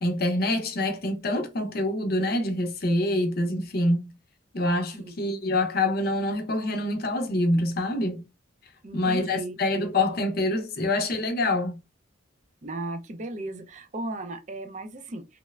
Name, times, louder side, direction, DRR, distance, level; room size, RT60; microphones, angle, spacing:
voice 1, 0.0-4.1 4.5-8.2 8.9-11.8, left 1 dB, 50° left, 0.6 m, -26 dB
voice 2, 8.8-9.5 12.6-15.4, right 2 dB, 40° right, 0.4 m, -36 dB
3.0 x 2.0 x 2.3 m
head